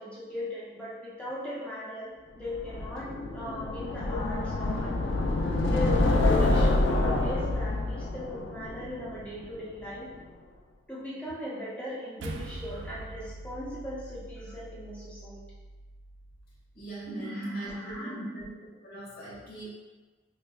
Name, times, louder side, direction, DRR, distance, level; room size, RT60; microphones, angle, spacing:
voice 1, 0.0-5.1 5.6-10.1 10.9-15.4 17.1-18.2, equal, 5° left, -9 dB, 0.8 m, -38 dB
sound 1, 2.5-9.6, left 2 dB, 80° left, 0.4 m, -27 dB
sound 2, 12.2-16.8, right 2 dB, 80° right, 0.3 m, -43 dB
voice 2, 16.7-18.5 18.8-19.7, right 2 dB, 55° left, -8 dB, 1.4 m, -43 dB
5.0 x 2.4 x 2.3 m, 1.3 s
head